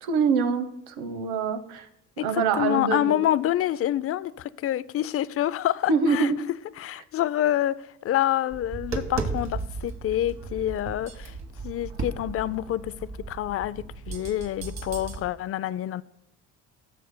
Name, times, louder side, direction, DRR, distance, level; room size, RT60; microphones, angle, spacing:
voice 1, 0.0-1.9 2.2-3.2 5.9-6.4, right 5 dB, 75° right, 1.0 m, -25 dB
voice 2, 2.2-6.3 6.8-11.3 11.6-12.9 13.3-16.0, left 12 dB, 40° left, 0.4 m, -27 dB
Tap, 8.5-15.2, right 4 dB, 45° right, 1.7 m, -35 dB
15.0 x 6.6 x 2.2 m
hypercardioid pair, 70°, 38 cm